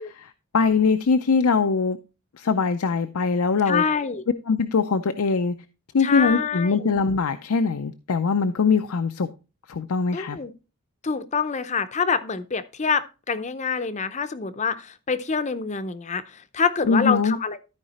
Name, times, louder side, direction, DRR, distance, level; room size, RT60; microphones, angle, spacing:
voice 1, 0.0-2.0 2.4-3.8 4.5-5.6 5.9-9.3 9.7-10.4 16.9-17.4, left 5 dB, 80° left, 9 dB, 0.5 m, -22 dB
voice 2, 3.7-4.2 6.0-6.9 10.1-10.5 11.0-17.6, left 5 dB, 30° left, 12 dB, 0.6 m, -26 dB
13.0 x 4.8 x 4.1 m, 0.32 s
head